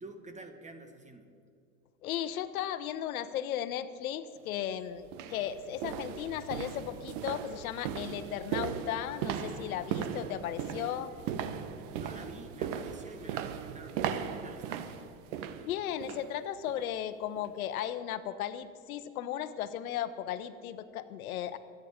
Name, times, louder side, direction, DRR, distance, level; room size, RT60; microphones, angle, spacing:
voice 1, 0.0-1.3 11.9-14.9, right 2 dB, 15° right, 6 dB, 1.8 m, -48 dB
voice 2, 2.0-11.1 15.6-21.6, left 10 dB, 80° left, 13 dB, 1.0 m, -36 dB
sound 1, 4.4-4.5 5.0-16.3 16.7-16.9 17.4-17.5, right 8 dB, 60° right, 1.3 m, -38 dB
23.5 x 9.6 x 5.1 m, 2.4 s
hypercardioid pair, 100°, 42 cm